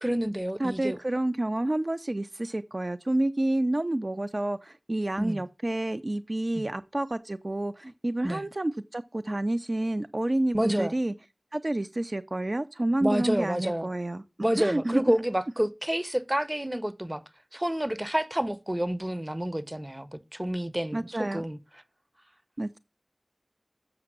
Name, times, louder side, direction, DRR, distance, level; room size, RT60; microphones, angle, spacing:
voice 1, 0.0-1.0 5.2-5.4 6.5-6.7 8.2-8.4 10.5-10.9 13.0-13.9 14.4-17.2 17.5-21.6, right 1 dB, 25° right, 0.8 m, -29 dB
voice 2, 0.6-11.1 11.5-14.2 14.6-15.0 20.9-21.4 22.6-22.8, right 1 dB, 60° right, 0.4 m, -29 dB
7.4 x 5.9 x 6.0 m
wide cardioid pair, 40°, 0 cm